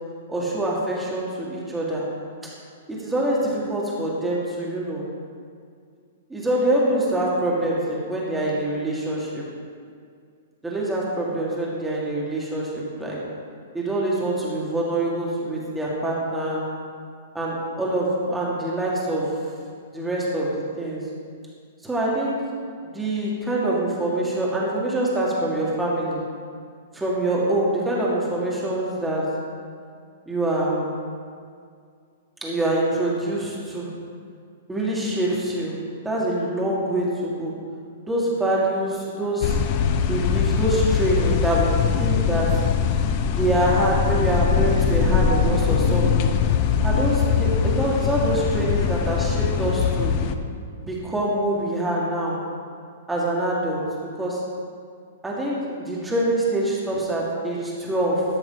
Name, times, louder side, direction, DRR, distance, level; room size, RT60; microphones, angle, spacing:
voice 1, 0.3-2.0 2.9-5.0 6.3-9.4 10.6-13.2 13.7-16.6 17.3-19.3 19.9-20.5 20.8-21.0 21.8-22.4 22.9-26.2 26.9-29.2 30.3-30.9 32.4-33.9 34.7-35.7 36.0-37.5 38.1-39.6 40.0-41.7 42.0-42.5 43.3-46.3 46.8-50.2 50.8-52.4 53.1-53.8 54.2-54.4 55.2-58.2, right 1 dB, 5° right, -5 dB, 1.6 m, -25 dB
sound 1, 39.4-50.3, left 7 dB, 40° left, 0.5 m, -22 dB
12.5 x 6.3 x 3.8 m, 2.2 s
hypercardioid pair, 150°, 0 cm